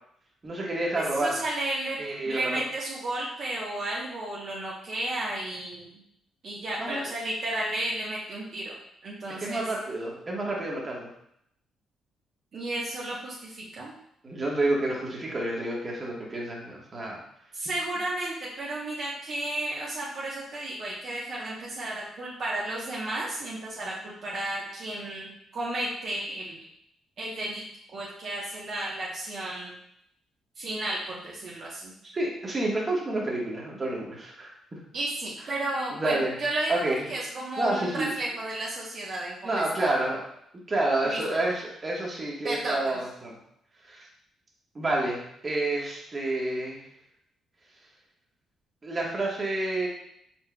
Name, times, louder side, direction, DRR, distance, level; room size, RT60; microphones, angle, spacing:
voice 1, 0.4-1.3 2.0-2.5 6.8-7.0 9.4-11.1 14.2-17.2 32.1-34.5 36.0-36.3 36.7-37.0 37.6-38.1 39.4-40.2 40.7-43.3 43.8-44.1 44.7-46.8 48.8-49.9, right 2 dB, 30° right, -2 dB, 1.2 m, -29 dB
voice 2, 0.9-2.0 2.2-6.0 6.4-8.7 9.0-9.6 12.5-13.9 17.5-26.6 27.2-29.7 30.6-31.9 34.9-36.8 37.1-39.9 41.0-41.2 42.4-43.0, right 1 dB, 55° right, -5 dB, 0.9 m, -33 dB
4.5 x 4.4 x 2.2 m, 0.75 s
cardioid pair, 90°, 0 cm